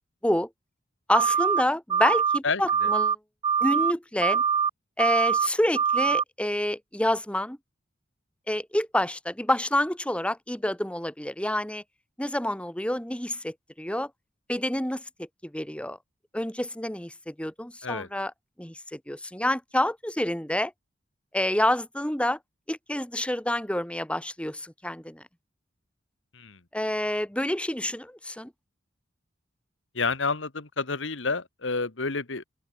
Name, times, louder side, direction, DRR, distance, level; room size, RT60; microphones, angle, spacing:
voice 1, 1.1-3.2 3.6-4.4 5.0-7.6 8.5-11.8 12.2-14.1 14.5-15.3 15.5-16.0 16.3-18.3 18.6-20.7 21.3-22.4 22.7-25.2 26.7-28.5, left 1 dB, 5° left, 2.1 m, -28 dB
sound 1, 1.1-1.6 1.9-2.4 2.7-3.2 3.4-3.9 4.2-4.7 5.0-5.5 5.8-6.2, right 7 dB, 25° right, 0.3 m, -23 dB
voice 2, 2.4-2.9 17.8-18.1 26.3-26.6 30.0-32.4, left 4 dB, 90° left, 1.8 m, -29 dB
open air
head